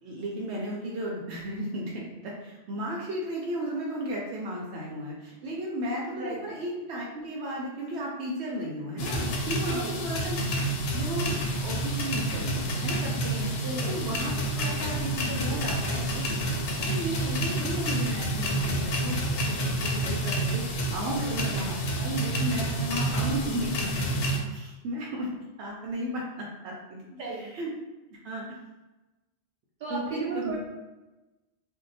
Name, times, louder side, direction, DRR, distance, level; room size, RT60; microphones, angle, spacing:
voice 1, 0.0-10.4 10.9-11.3 11.6-13.5 13.9-16.5 16.8-23.7 24.5-25.3 25.6-27.0 27.3-27.7 28.1-28.4 29.9-30.6, right 1 dB, 85° right, -3 dB, 0.9 m, -34 dB
sound 1, 9.0-24.4, right 1 dB, 70° left, 0.8 m, -29 dB
voice 2, 13.6-13.9 21.1-21.3 27.2-27.4 29.8-30.6, right 2 dB, 50° right, -4 dB, 0.9 m, -34 dB
2.7 x 2.1 x 3.9 m, 1.1 s
omnidirectional pair, 1.1 m